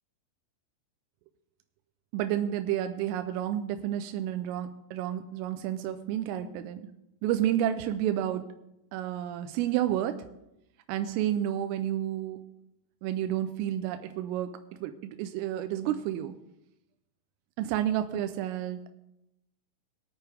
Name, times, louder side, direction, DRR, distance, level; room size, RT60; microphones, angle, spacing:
voice 1, 2.1-6.9 7.2-8.5 8.9-10.3 10.9-12.4 13.0-14.5 14.8-16.4 17.6-18.9, right 11 dB, 90° right, 8 dB, 3.3 m, -30 dB
21.5 x 9.0 x 3.5 m, 0.87 s
omnidirectional pair, 5.7 m